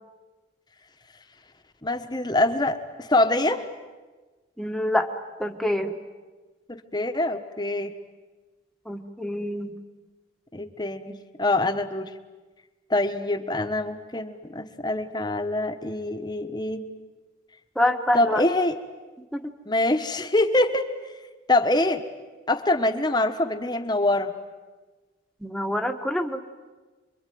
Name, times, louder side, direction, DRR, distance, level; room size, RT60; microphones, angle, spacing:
voice 1, 1.8-3.7 6.7-7.9 10.5-12.1 12.9-16.8 18.1-18.7 19.7-20.9 21.5-22.0 22.5-24.3, left 2 dB, 20° left, 7 dB, 1.3 m, -24 dB
voice 2, 4.6-5.1 5.4-6.0 8.8-9.7 17.7-18.4 19.3-19.5 25.4-26.4, left 1 dB, ahead, 3 dB, 1.4 m, -26 dB
26.5 x 23.5 x 9.4 m, 1.3 s
head